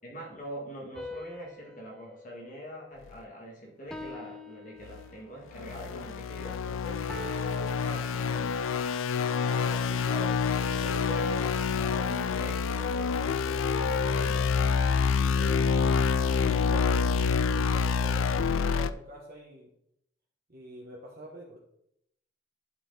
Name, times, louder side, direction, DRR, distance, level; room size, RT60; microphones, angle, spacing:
voice 1, 0.0-8.6 10.7-14.5, right 1 dB, 40° left, -2 dB, 1.9 m, -44 dB
sound 1, 0.9-3.3 3.9-5.5 7.1-7.7, left 2 dB, 5° left, 0.5 m, -44 dB
sound 2, 4.9-5.1 5.5-18.9, left 5 dB, 90° left, 0.4 m, -27 dB
voice 2, 9.4-11.2 15.3-15.7 16.4-19.7 20.5-21.6, right 2 dB, 50° right, -3 dB, 1.3 m, -45 dB
11.5 x 4.5 x 3.9 m, 0.77 s
head